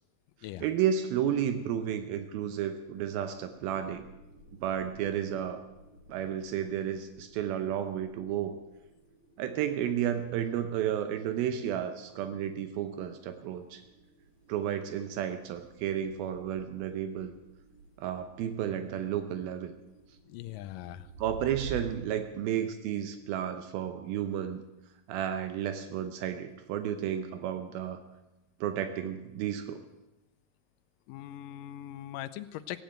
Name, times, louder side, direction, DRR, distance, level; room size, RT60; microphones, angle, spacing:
voice 1, 0.6-4.0 4.6-5.6 6.1-8.6 9.4-13.8 14.5-17.3 18.0-19.7 21.2-24.6 25.1-28.0 28.6-29.8, right 9 dB, 85° right, 8 dB, 2.7 m, -32 dB
sound 1, 2.5-21.9, right 5 dB, 45° right, 1.7 m, -52 dB
voice 2, 20.3-21.1 31.1-32.8, left 13 dB, 80° left, 11 dB, 2.2 m, -41 dB
17.0 x 9.2 x 9.0 m, 1.0 s
omnidirectional pair, 4.2 m